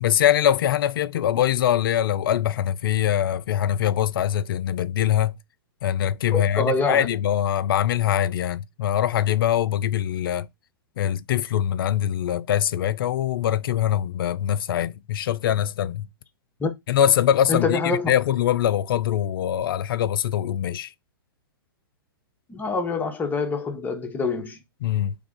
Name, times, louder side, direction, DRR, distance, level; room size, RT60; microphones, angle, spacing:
voice 1, 0.0-5.4 5.8-10.5 11.0-16.1 16.9-20.9 24.8-25.2, left 10 dB, 65° left, 0.4 m, -23 dB
voice 2, 6.3-7.1 16.6-16.7 17.5-18.1 22.5-24.6, left 3 dB, 15° left, 0.9 m, -25 dB
3.3 x 2.4 x 3.7 m
hypercardioid pair, 115°, 12 cm